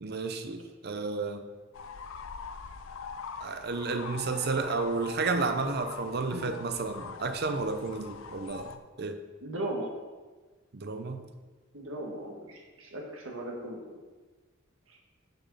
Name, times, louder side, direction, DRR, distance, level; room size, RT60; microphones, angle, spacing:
voice 1, 0.0-1.5 3.4-8.7 9.0-9.2 10.7-11.3, right 4 dB, 50° right, 8 dB, 0.7 m, -32 dB
sound 1, 1.7-8.8, left 5 dB, 80° left, 0.5 m, -43 dB
voice 2, 9.4-9.9 11.7-14.0, right 1 dB, 85° right, -1 dB, 1.6 m, -37 dB
6.8 x 6.2 x 5.4 m, 1.3 s
head